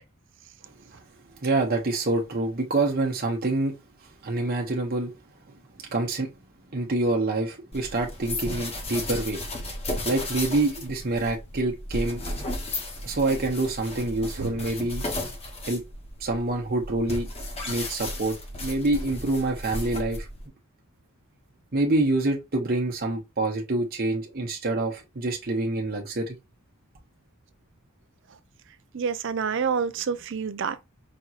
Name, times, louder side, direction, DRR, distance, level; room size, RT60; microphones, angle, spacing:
voice 1, 1.4-3.7 4.2-5.1 5.9-6.3 6.7-9.4 10.0-12.2 13.0-15.0 15.6-15.8 16.2-17.3 17.7-18.3 18.6-20.3 21.7-26.4, right 2 dB, 45° right, 0.9 m, -26 dB
sound 1, 7.7-20.5, left 1 dB, 30° left, 0.9 m, -34 dB
voice 2, 28.9-30.9, right 6 dB, 60° right, 0.5 m, -28 dB
5.2 x 2.9 x 2.4 m
head